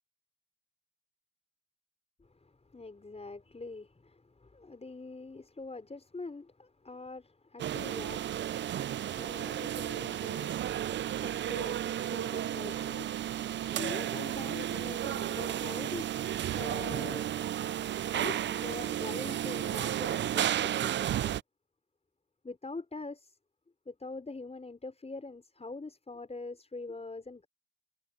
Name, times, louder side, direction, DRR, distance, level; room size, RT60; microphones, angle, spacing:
voice 1, 2.2-13.4 13.7-17.3 18.1-21.4 22.4-23.4 23.9-27.5, left 3 dB, 20° left, 5.4 m, -44 dB
sound 1, 7.6-21.4, right 11 dB, 40° right, 0.4 m, -33 dB
cardioid pair, 90°, 30 cm